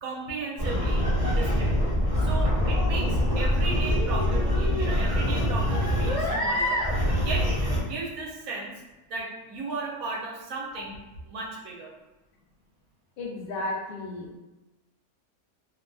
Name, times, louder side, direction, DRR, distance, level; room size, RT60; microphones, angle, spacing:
voice 1, 0.0-1.8 2.2-6.8 7.2-7.5 7.8-8.7 9.1-11.0 11.2-11.9, right 3 dB, 80° right, -2 dB, 1.0 m, -35 dB
sound 1, 0.6-7.8, equal, 30° right, 0.7 m, -24 dB
voice 2, 13.2-14.4, left 2 dB, 60° left, -2 dB, 0.5 m, -33 dB
2.7 x 2.4 x 2.2 m, 1.1 s
omnidirectional pair, 1.5 m